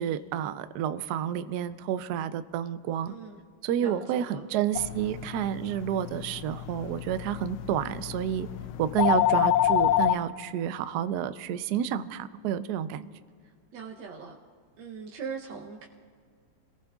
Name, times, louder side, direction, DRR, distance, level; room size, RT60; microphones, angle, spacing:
voice 1, 0.0-3.1 3.6-8.5 8.8-13.1, right 10 dB, 85° right, 12 dB, 0.8 m, -30 dB
voice 2, 3.1-3.4 3.8-4.5 13.4-14.4 14.8-15.9, right 6 dB, 70° right, -1 dB, 1.5 m, -41 dB
sound 1, 4.8-10.2, left 12 dB, 80° left, 1.4 m, -28 dB
28.0 x 18.5 x 2.4 m, 2.1 s
omnidirectional pair, 2.4 m